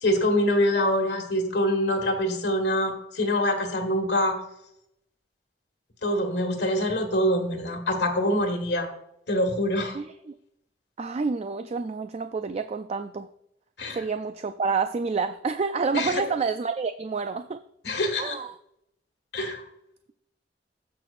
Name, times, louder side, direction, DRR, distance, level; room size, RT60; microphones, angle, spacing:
voice 1, 0.0-4.3 6.0-8.9 9.3-10.0 13.8-14.0 15.9-16.2 17.8-18.4 19.3-19.6, left 1 dB, 75° left, 4 dB, 1.6 m, -25 dB
voice 2, 9.9-10.3 11.0-13.3 13.9-17.6 18.2-18.6, right 4 dB, 35° right, 9 dB, 0.3 m, -28 dB
16.0 x 5.9 x 2.5 m, 0.80 s
head